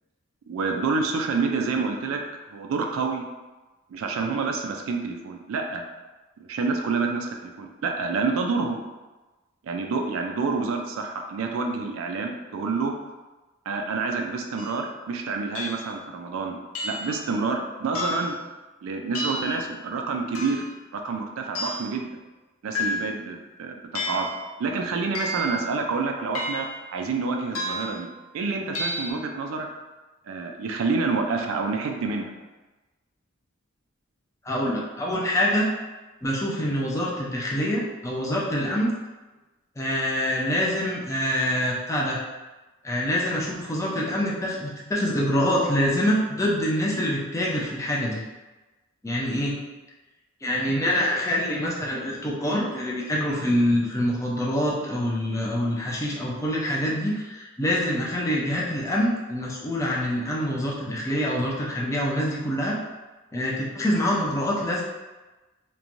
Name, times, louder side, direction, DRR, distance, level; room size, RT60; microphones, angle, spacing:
voice 1, 0.5-2.2 2.5-3.2 3.9-5.8 6.4-8.8 9.6-12.9 13.7-16.6 16.8-18.4 18.8-20.7 20.9-22.1 22.6-24.3 24.6-26.7 26.9-28.1 28.3-29.7 30.3-32.3, right 4 dB, 80° right, 3 dB, 0.3 m, -28 dB
sound 1, 14.6-14.8 15.5-15.9 16.7-17.2 17.9-18.4 19.1-19.6 20.3-20.7 21.5-21.9 22.7-23.3 23.9-24.4 25.1-25.6 26.3-26.8 27.5-28.0 28.7-29.1, left 1 dB, 80° left, 0.5 m, -31 dB
voice 2, 34.4-35.7 36.2-38.9 39.8-42.2 42.8-48.2 49.0-49.5 50.4-62.8 63.3-64.8, equal, 15° left, -4 dB, 0.4 m, -25 dB
3.0 x 2.2 x 2.5 m, 1.2 s
head